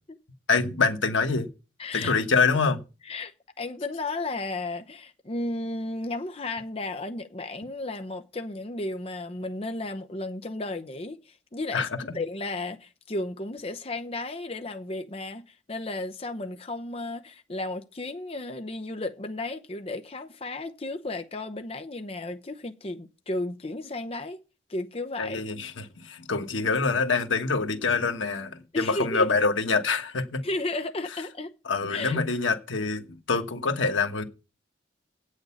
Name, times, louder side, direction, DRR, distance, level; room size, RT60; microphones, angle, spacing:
voice 1, 0.5-1.5 1.9-2.8 11.7-12.2 25.2-30.4 31.6-34.2, left 4 dB, 90° left, 1.3 m, -25 dB
voice 2, 1.8-2.1 3.1-24.4 24.7-25.4 28.7-29.3 30.4-31.5 31.9-32.2, left 2 dB, 30° left, 0.7 m, -34 dB
8.6 x 6.5 x 8.2 m
head